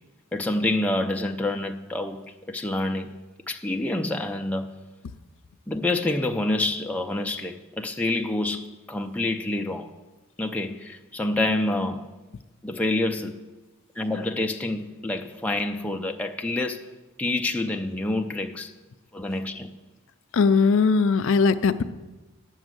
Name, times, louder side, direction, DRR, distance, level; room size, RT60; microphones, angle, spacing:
voice 1, 0.3-3.1 3.5-4.7 5.7-9.9 10.4-12.1 12.6-13.4 14.0-16.8 17.2-18.7 19.1-19.7, left 2 dB, 5° left, 0.4 m, -27 dB
voice 2, 20.3-21.8, left 5 dB, 65° left, 0.4 m, -19 dB
8.8 x 6.3 x 7.7 m
head